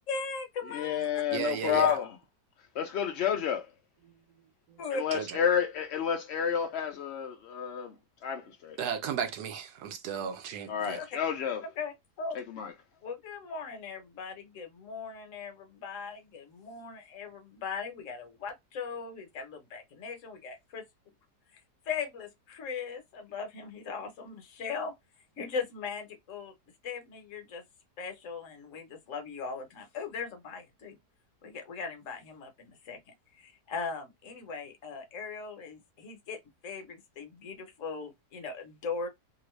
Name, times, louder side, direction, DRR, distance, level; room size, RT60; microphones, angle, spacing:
voice 1, 0.1-1.1 4.8-5.0 11.6-12.4 13.0-20.8 21.9-24.9 25.4-26.5 26.8-27.6 28.0-31.0 31.4-33.0 33.4-36.4 36.6-39.1, left 5 dB, 55° left, 1.0 m, -39 dB
voice 2, 0.7-2.1 2.7-3.7 4.9-7.9 8.2-8.8 10.7-11.6 12.3-12.7, left 8 dB, 80° left, 0.6 m, -30 dB
voice 3, 1.3-1.9 4.0-4.1 4.7-4.8 5.1-5.4 8.8-11.0, right 7 dB, 75° right, 1.1 m, -35 dB
3.0 x 2.5 x 3.0 m
omnidirectional pair, 1.8 m